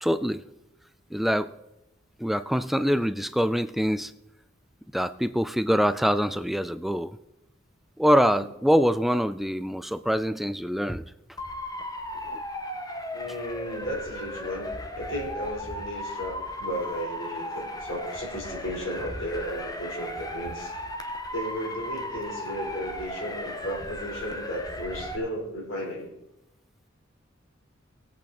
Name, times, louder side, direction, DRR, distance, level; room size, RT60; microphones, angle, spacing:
voice 1, 0.0-0.4 1.1-1.5 2.2-4.1 4.9-7.2 8.0-11.0 12.3-12.4, equal, ahead, 13 dB, 0.3 m, -24 dB
Motor vehicle (road) / Siren, 11.4-25.2, left 1 dB, 20° left, 1.4 m, -36 dB
voice 2, 13.1-20.7 21.3-26.1, equal, 90° left, 0 dB, 4.3 m, -34 dB
20.0 x 8.5 x 4.3 m, 0.92 s
head